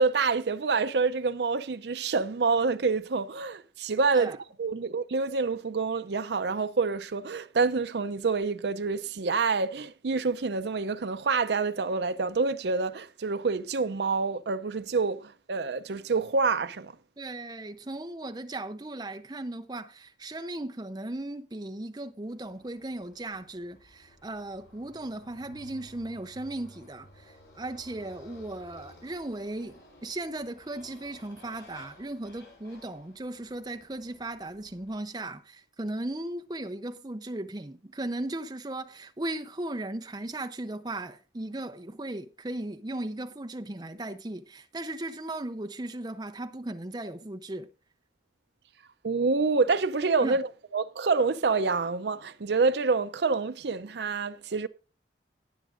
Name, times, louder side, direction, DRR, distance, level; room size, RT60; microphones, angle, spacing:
voice 1, 0.0-4.3 4.6-16.9 49.0-50.5 50.7-54.7, right 4 dB, 70° right, 0.6 m, -27 dB
voice 2, 17.2-47.7 50.2-50.4, right 1 dB, 25° right, 0.7 m, -37 dB
Motorcycle, 22.3-35.0, equal, 85° left, 6.7 m, -55 dB
19.5 x 7.1 x 2.6 m
head